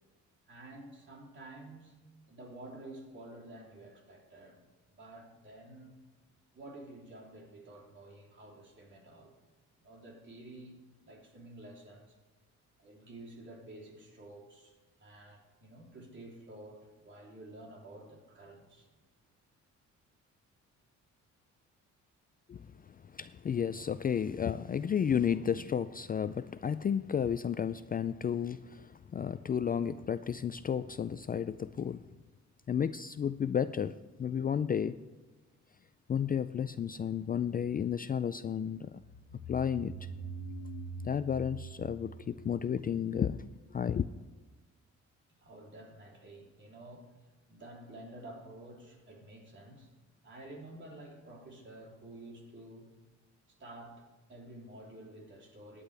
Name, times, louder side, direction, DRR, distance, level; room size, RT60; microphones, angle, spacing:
voice 1, 0.5-2.0 2.3-4.6 4.9-5.9 6.5-9.3 9.8-10.8 11.0-12.2 12.8-14.7 15.0-18.9 45.4-47.1 47.5-49.9 50.2-52.9 53.6-55.8, right 1 dB, 40° right, 0 dB, 3.4 m, -50 dB
voice 2, 23.1-32.0 32.7-33.9 34.2-35.0 36.1-39.0 39.5-39.9 41.0-43.4 43.7-44.1, left 8 dB, 30° left, 13 dB, 0.4 m, -32 dB
sound 1, 39.0-43.6, right 2 dB, 85° left, 1.2 m, -44 dB
17.0 x 10.0 x 3.4 m, 1.2 s
cardioid pair, 90°, 30 cm